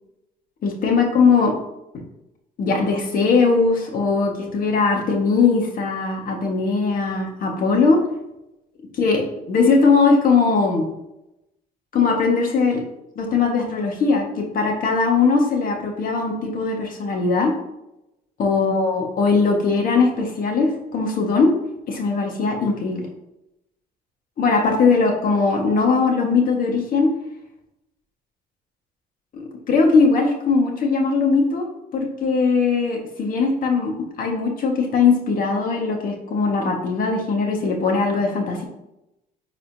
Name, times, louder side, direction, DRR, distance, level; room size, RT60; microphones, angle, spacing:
voice 1, 0.6-1.5 1.9-2.0 2.6-8.0 8.9-9.2 9.5-10.8 11.9-12.8 13.1-17.5 18.4-21.5 21.9-23.1 24.4-27.1 29.3-31.7 31.9-38.6, left 4 dB, 55° left, 1 dB, 1.7 m, -20 dB
9.9 x 4.1 x 2.8 m, 0.87 s
cardioid pair, 110°, 17 cm